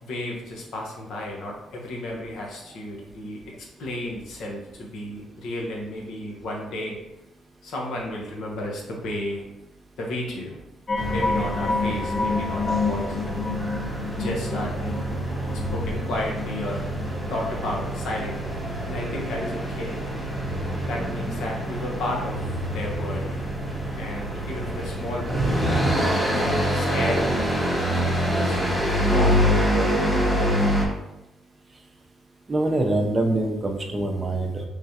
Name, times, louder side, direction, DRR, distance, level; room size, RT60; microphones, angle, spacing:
voice 1, 0.0-3.4 3.8-7.0 7.6-9.4 10.0-10.6 11.1-13.2 14.2-15.1 15.7-16.8 17.3-18.6 18.9-20.0 20.9-23.4 24.0-28.6 29.1-29.4 29.7-30.2, left 1 dB, 75° left, -1 dB, 0.9 m, -33 dB
sound 1, 10.9-17.2 17.5-17.6, left 3 dB, 45° left, 0.4 m, -28 dB
sound 2, 11.0-30.9, equal, 10° left, 0.9 m, -26 dB
voice 2, 32.5-34.6, right 2 dB, 25° right, 2 dB, 0.6 m, -24 dB
3.5 x 3.3 x 2.8 m, 0.91 s
cardioid pair, 90°, 0 cm